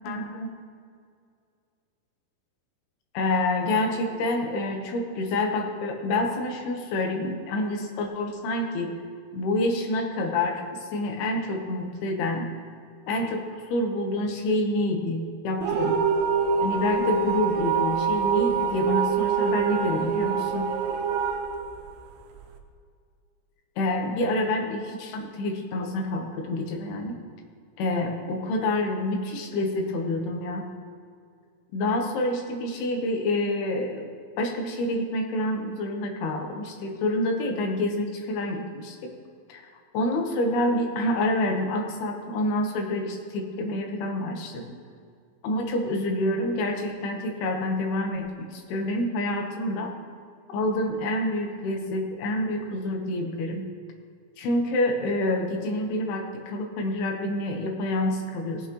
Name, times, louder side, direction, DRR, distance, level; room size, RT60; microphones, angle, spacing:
voice 1, 0.0-0.5 3.1-9.0 9.3-12.5 13.1-16.0 16.6-20.7 23.8-27.2 27.8-30.7 31.7-34.1 34.4-39.1 39.5-39.6 39.9-44.8 45.4-49.9 50.5-53.7 54.4-58.7, left 1 dB, 75° left, 3 dB, 3.0 m, -27 dB
sound 1, 15.6-22.5, right 6 dB, 85° right, 2.9 m, -25 dB
18.0 x 8.2 x 3.0 m, 2.2 s
omnidirectional pair, 4.8 m